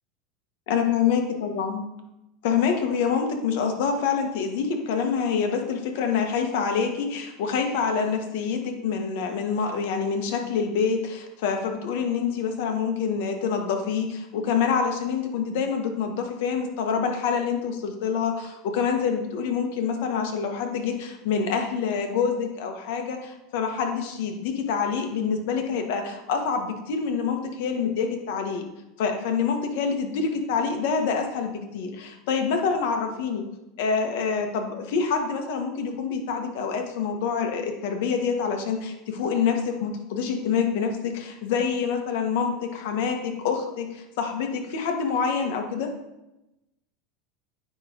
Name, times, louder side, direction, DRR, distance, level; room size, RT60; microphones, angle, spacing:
voice 1, 0.7-1.8 2.4-28.6 29.0-33.4 33.8-45.9, left 6 dB, 70° left, 4 dB, 1.3 m, -26 dB
9.3 x 3.3 x 5.0 m, 0.94 s
supercardioid pair, 120°, 0 cm